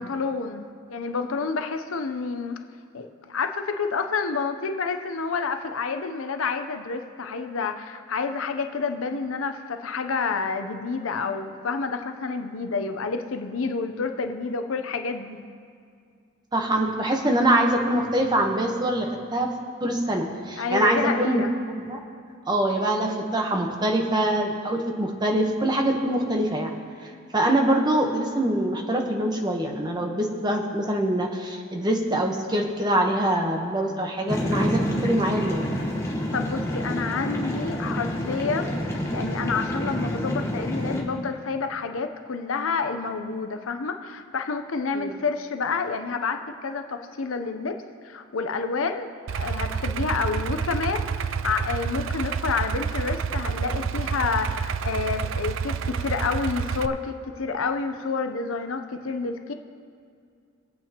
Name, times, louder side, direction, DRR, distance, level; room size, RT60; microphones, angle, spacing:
voice 1, 0.0-2.6 2.9-15.4 20.6-21.5 36.3-59.5, left 4 dB, 75° left, 7 dB, 0.7 m, -29 dB
voice 2, 16.5-19.5 19.8-21.4 21.7-22.0 22.5-26.7 27.0-35.7 44.9-45.2, right 1 dB, 20° right, 2 dB, 1.0 m, -24 dB
sound 1, 34.3-41.0, equal, 15° left, 1.2 m, -28 dB
Idling, 49.3-56.9, right 6 dB, 65° right, 0.4 m, -29 dB
21.0 x 8.4 x 2.9 m, 2.3 s
head